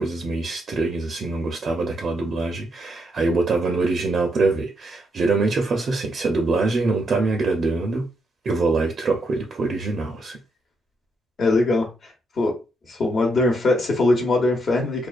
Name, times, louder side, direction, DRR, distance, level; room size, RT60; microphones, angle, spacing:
voice 1, 0.0-8.1 8.4-10.4, right 3 dB, 50° right, 0.5 m, -24 dB
voice 2, 11.4-11.9 12.4-12.6 12.9-15.1, left 2 dB, 50° left, 0.9 m, -21 dB
2.3 x 2.3 x 2.4 m
cardioid pair, 90°, 0 cm